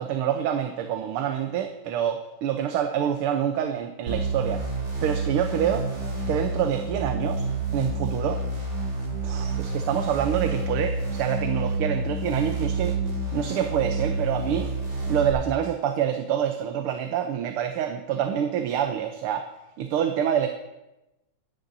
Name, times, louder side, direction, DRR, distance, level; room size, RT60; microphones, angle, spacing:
voice 1, 0.0-4.6 5.0-5.8 6.3-7.4 7.7-8.4 9.2-13.0 13.3-14.7 15.1-19.5 19.8-20.5, right 9 dB, 85° right, 6 dB, 1.7 m, -26 dB
sound 1, 4.1-15.3, right 3 dB, 60° right, 3.2 m, -29 dB
24.5 x 10.0 x 2.7 m, 0.97 s
omnidirectional pair, 2.4 m